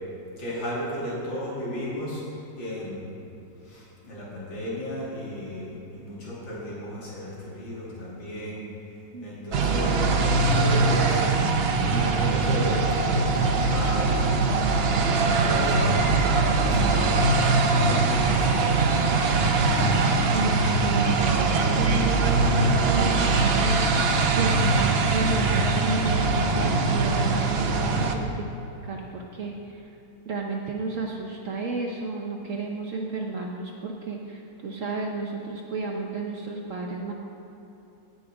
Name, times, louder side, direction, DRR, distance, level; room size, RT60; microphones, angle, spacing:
voice 1, 0.4-2.3 2.6-3.1 3.6-8.6 9.2-11.4 11.9-14.4 15.0-18.8, equal, 85° left, -7 dB, 3.4 m, -34 dB
sound 1, 9.5-28.2, right 3 dB, 85° right, 0.5 m, -22 dB
voice 2, 20.3-28.5 28.8-29.8 30.3-37.1, right 3 dB, 55° right, 0 dB, 0.9 m, -32 dB
16.5 x 5.6 x 4.9 m, 2.9 s
omnidirectional pair, 2.0 m